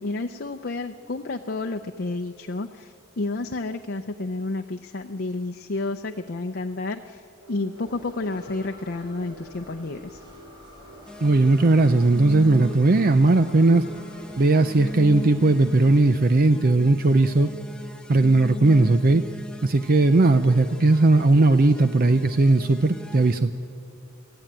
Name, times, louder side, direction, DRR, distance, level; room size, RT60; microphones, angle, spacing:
voice 1, 0.0-7.2 7.5-10.2, left 2 dB, 50° left, 5 dB, 0.6 m, -30 dB
sound 1, 7.4-13.9, right 1 dB, 75° right, 5.6 m, -48 dB
sound 2, 7.7-16.0, equal, 20° right, 3.9 m, -49 dB
sound 3, 11.1-23.4, equal, 5° left, 0.8 m, -39 dB
voice 2, 11.2-13.8 14.4-17.5 18.1-19.2 19.6-23.5, right 2 dB, 45° right, 10 dB, 0.6 m, -18 dB
24.0 x 15.5 x 8.9 m, 2.7 s
head